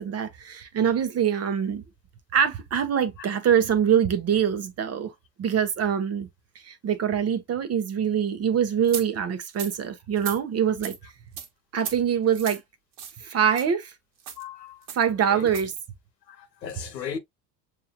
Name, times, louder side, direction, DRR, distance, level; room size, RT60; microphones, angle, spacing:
voice 1, 0.0-1.8 2.3-5.1 5.4-6.3 6.6-10.9 11.7-12.6 13.2-13.9 14.9-15.7, right 8 dB, 30° right, 0.9 m, -24 dB
sound 1, 8.9-9.1 9.5-9.7 10.2-10.4 10.8-11.0 11.4-11.5 11.8-12.0 12.3-12.6 13.0-13.2 13.5-13.7 14.2-14.4 14.9-15.0 15.5-15.7, right 7 dB, 50° right, 1.5 m, -36 dB
voice 2, 14.4-14.8 15.3-15.5 16.3-17.2, left 7 dB, 85° left, 1.1 m, -37 dB
6.7 x 3.0 x 2.2 m
hypercardioid pair, 75°, 49 cm